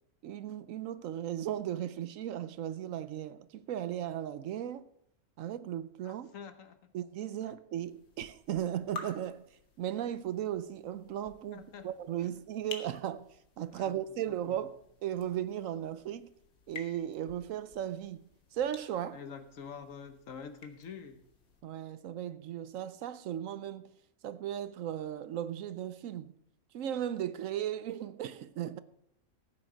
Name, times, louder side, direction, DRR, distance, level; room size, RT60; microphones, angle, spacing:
voice 1, 0.2-4.9 5.4-6.3 6.9-9.5 9.8-14.8 15.0-16.3 16.7-19.2 21.6-23.9 24.2-26.3 26.7-28.8, right 11 dB, 70° right, 1.0 m, -36 dB
voice 2, 6.0-6.8 7.4-7.6 11.5-11.9 12.2-12.3 13.7-14.0 14.3-14.6 19.1-21.2, left 6 dB, 65° left, 1.4 m, -47 dB
sound 1, 7.8-21.6, left 4 dB, 90° left, 1.9 m, -52 dB
14.5 x 8.9 x 5.0 m
omnidirectional pair, 1.5 m